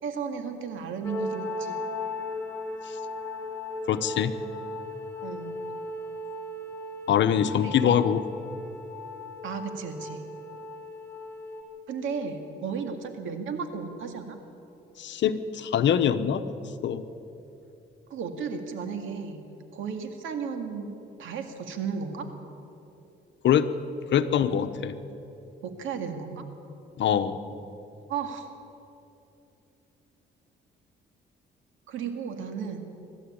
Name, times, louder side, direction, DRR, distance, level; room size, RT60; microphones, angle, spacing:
voice 1, 0.0-1.8 5.2-5.6 7.6-7.9 9.4-10.2 11.9-14.4 18.1-19.4 19.7-22.3 25.6-26.5 28.1-28.5 31.9-32.9, right 6 dB, 80° right, 6 dB, 2.1 m, -34 dB
sound 1, 1.0-11.6, left 2 dB, 10° left, 4.4 m, -37 dB
voice 2, 3.9-4.3 7.1-8.2 15.0-16.5 16.8-17.0 23.4-23.7 24.1-24.9 27.0-27.4, left 9 dB, 65° left, 10 dB, 1.1 m, -23 dB
24.0 x 12.5 x 8.8 m, 2.9 s
cardioid pair, 90°, 20 cm